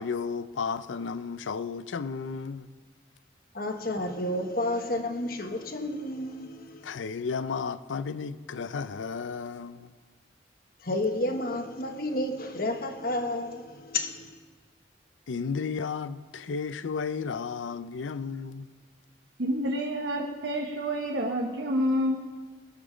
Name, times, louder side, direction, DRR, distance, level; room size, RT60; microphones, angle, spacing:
voice 1, 0.0-2.7 4.2-4.3 6.8-9.9 15.3-18.7, left 5 dB, 90° left, 0.5 m, -33 dB
voice 2, 3.5-6.9 10.8-14.4, left 1 dB, 50° left, 1.1 m, -31 dB
voice 3, 19.4-22.2, equal, 70° right, 1.0 m, -28 dB
20.5 x 7.1 x 5.0 m
head